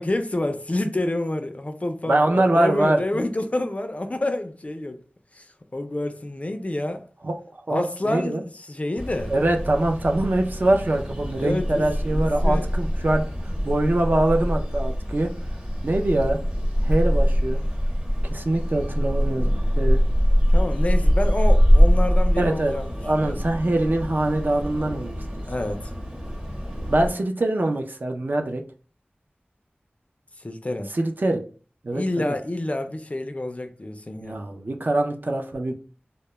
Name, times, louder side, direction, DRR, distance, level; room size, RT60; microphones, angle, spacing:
voice 1, 0.0-5.0 5.3-7.1 7.7-9.3 11.4-12.8 20.4-23.4 25.5-25.9 30.4-30.9 31.9-34.4, left 1 dB, 35° left, 0.3 m, -28 dB
voice 2, 2.1-3.0 7.2-8.4 9.3-15.3 15.8-16.4 16.8-17.6 18.3-20.0 22.4-22.7 23.0-25.2 26.9-28.6 30.9-31.4 31.8-32.3 34.2-35.7, right 1 dB, 55° right, 0.4 m, -23 dB
sound 1, 9.0-27.1, equal, 25° right, 0.8 m, -23 dB
2.2 x 2.0 x 2.9 m
wide cardioid pair, 50°, 4 cm